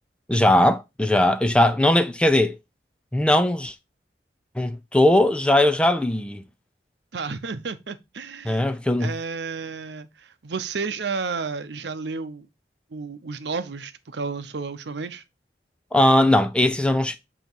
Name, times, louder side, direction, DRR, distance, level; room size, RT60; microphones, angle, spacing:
voice 1, 0.3-2.5 3.1-3.7 4.6-6.4 8.4-9.1 15.9-17.2, left 1 dB, 5° left, 0.4 m, -19 dB
voice 2, 7.1-8.7 9.0-12.5 12.9-15.2, right 4 dB, 80° right, 0.7 m, -32 dB
8.0 x 2.9 x 4.4 m
head